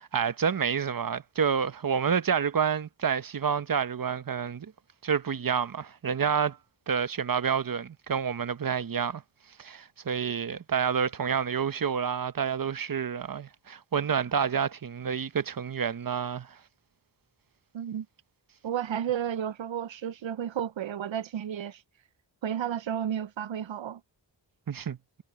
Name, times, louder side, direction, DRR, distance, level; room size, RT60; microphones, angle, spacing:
voice 1, 0.0-4.7 5.0-6.6 6.9-9.2 9.6-16.6 24.7-25.0, right 7 dB, 50° right, 0.8 m, -29 dB
voice 2, 17.7-18.1 18.6-21.8 22.4-24.0, right 9 dB, 85° right, 0.6 m, -32 dB
wide cardioid pair, 55°, 44 cm